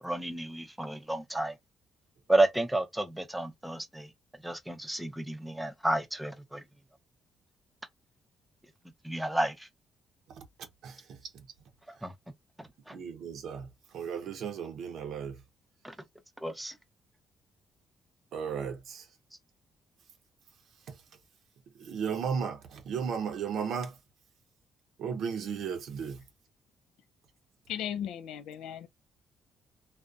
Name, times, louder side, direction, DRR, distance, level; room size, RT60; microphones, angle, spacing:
voice 1, 0.0-1.6 2.3-6.6 9.0-9.7 12.0-12.1 12.6-13.0 15.8-15.9 16.4-16.8, right 1 dB, 5° right, 0.6 m, -31 dB
voice 2, 10.3-11.5 12.0-12.1 12.9-15.4 18.3-19.1 20.9-21.0 21.8-24.0 25.0-26.2, right 6 dB, 75° right, 0.6 m, -35 dB
voice 3, 27.7-28.9, left 9 dB, 85° left, 0.3 m, -36 dB
2.6 x 2.1 x 2.4 m
cardioid pair, 90°, 0 cm